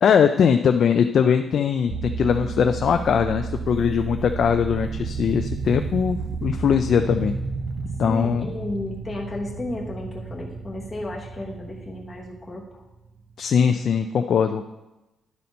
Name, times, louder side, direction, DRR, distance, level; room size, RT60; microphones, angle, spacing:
voice 1, 0.0-7.3 8.0-8.5 13.4-14.6, left 7 dB, 50° left, 7 dB, 0.3 m, -21 dB
sound 1, 1.9-13.3, right 4 dB, 45° right, 0.7 m, -32 dB
voice 2, 8.1-12.8, left 1 dB, 10° left, -4 dB, 1.0 m, -33 dB
10.5 x 4.3 x 5.3 m, 1.0 s
cardioid pair, 165°, 0 cm